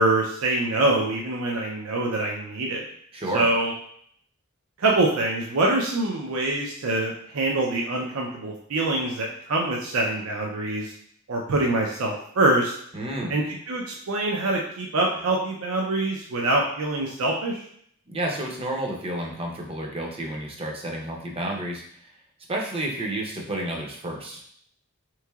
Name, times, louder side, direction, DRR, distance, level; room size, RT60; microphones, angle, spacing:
voice 1, 0.0-2.8 3.3-3.7 4.8-10.9 11.3-12.7 13.3-17.6, right 2 dB, 75° right, -1 dB, 0.5 m, -24 dB
voice 2, 3.1-3.5 12.9-13.4 18.1-22.1 22.5-24.4, right 1 dB, 25° right, 0 dB, 0.6 m, -30 dB
3.7 x 3.1 x 2.3 m, 0.64 s
head